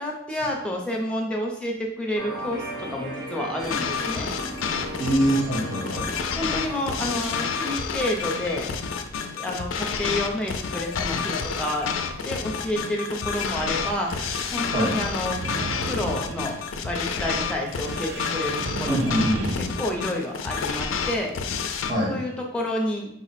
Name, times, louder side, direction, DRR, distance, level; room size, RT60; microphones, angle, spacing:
voice 1, 0.0-4.3 6.4-8.7 9.3-11.9 12.2-14.1 14.5-15.4 15.9-16.6 16.8-19.1 19.8-21.3 22.1-23.1, left 1 dB, 5° left, -1 dB, 0.6 m, -29 dB
sound 1, 2.1-7.7, right 1 dB, 80° right, 1.0 m, -37 dB
sound 2, 3.6-21.9, left 6 dB, 90° left, 0.4 m, -29 dB
voice 2, 5.0-6.1 14.7-15.0 18.8-19.7 21.9-22.2, equal, 45° right, -5 dB, 0.9 m, -24 dB
sound 3, 13.6-19.6, right 4 dB, 65° right, 0.4 m, -35 dB
5.2 x 2.1 x 4.1 m, 0.75 s
head